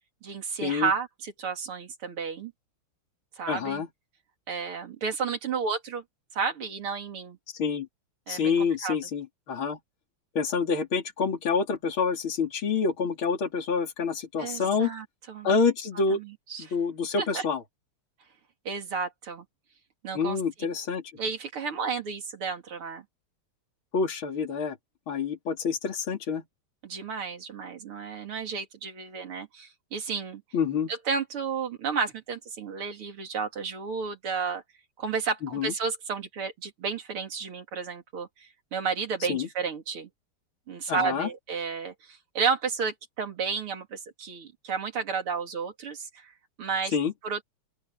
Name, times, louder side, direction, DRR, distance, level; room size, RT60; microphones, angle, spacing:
voice 1, 0.2-2.5 3.4-3.8 4.5-6.0 6.3-7.4 8.3-9.0 14.4-15.5 16.1-16.7 17.2-17.4 18.6-19.4 20.0-20.4 21.2-23.0 26.8-30.4 30.9-34.6 35.0-40.1 40.7-46.9 47.2-47.4, right 5 dB, 85° right, 3.5 m, -32 dB
voice 2, 3.5-3.9 7.5-7.9 8.3-9.8 10.4-14.9 15.4-16.2 16.6-17.6 20.1-21.0 23.9-24.8 25.1-26.4 30.5-30.9 35.5-35.7 39.3-39.5 40.9-41.3 46.9-47.1, left 5 dB, 70° left, 3.7 m, -27 dB
open air
omnidirectional pair, 2.3 m